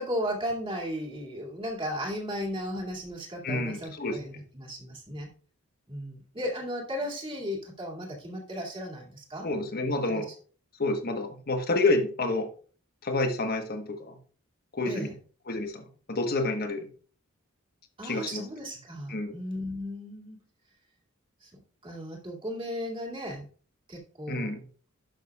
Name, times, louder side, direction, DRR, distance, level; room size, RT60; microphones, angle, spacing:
voice 1, 0.0-5.3 5.9-9.5 10.1-10.2 14.8-15.1 18.0-20.4 21.4-23.5 23.9-24.5, equal, 25° right, -2 dB, 2.5 m, -35 dB
voice 2, 3.4-4.2 9.4-10.3 10.8-12.5 13.0-14.2 14.7-15.1 15.5-16.8 18.0-18.4 19.1-19.4 24.3-24.6, left 2 dB, 45° left, 5 dB, 1.3 m, -29 dB
11.5 x 6.4 x 2.4 m, 0.42 s
head